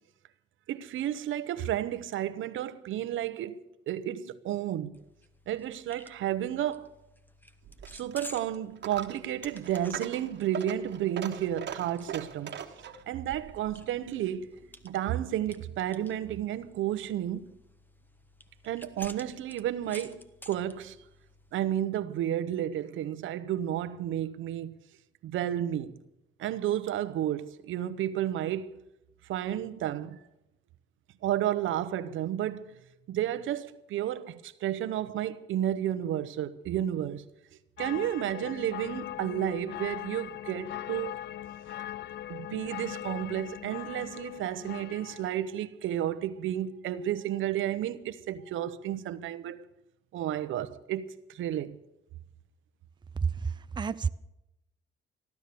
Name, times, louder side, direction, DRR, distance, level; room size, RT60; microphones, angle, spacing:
voice 1, 0.7-3.6 3.9-5.0 5.5-6.9 7.9-12.7 13.1-14.5 14.8-17.5 18.6-21.0 21.5-24.7 25.2-26.0 26.4-28.8 29.3-30.2 31.2-32.8 33.1-37.2 37.8-41.2 42.3-49.6 50.1-51.8, right 11 dB, 80° right, 0.9 m, -32 dB
sound 1, 4.9-21.5, left 1 dB, 10° left, 1.3 m, -52 dB
Coin (dropping), 7.6-15.1, right 8 dB, 60° right, 1.4 m, -42 dB
sound 2, 37.8-45.4, left 12 dB, 60° left, 0.5 m, -40 dB
voice 2, 53.2-54.1, right 5 dB, 20° right, 0.5 m, -30 dB
15.5 x 12.0 x 6.8 m
cardioid pair, 90°, 20 cm